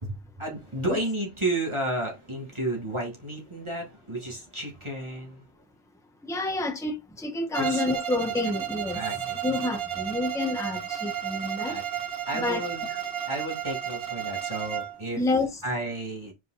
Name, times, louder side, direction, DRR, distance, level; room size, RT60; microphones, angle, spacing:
voice 1, 0.0-5.5 7.6-8.0 8.3-8.4 8.9-9.4 11.7-11.8 12.3-12.9 13.3-15.2 15.6-16.3, right 1 dB, 25° right, 2.3 m, -32 dB
voice 2, 6.3-9.0 9.4-11.8 12.3-12.6 15.2-15.5, left 2 dB, 5° left, 1.2 m, -28 dB
Bowed string instrument, 7.5-15.0, right 10 dB, 60° right, 1.1 m, -32 dB
5.1 x 5.0 x 4.1 m
omnidirectional pair, 1.1 m